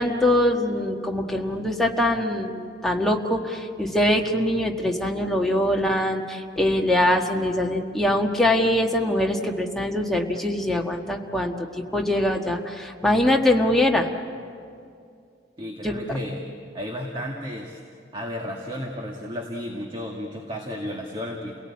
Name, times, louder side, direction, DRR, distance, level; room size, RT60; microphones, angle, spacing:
voice 1, 0.0-11.5 11.9-14.1 15.8-15.9, left 1 dB, ahead, 0 dB, 1.5 m, -23 dB
voice 2, 15.6-16.4 16.7-17.8 18.1-21.5, left 1 dB, 30° right, 0 dB, 1.9 m, -33 dB
30.0 x 18.0 x 8.6 m, 2.4 s
head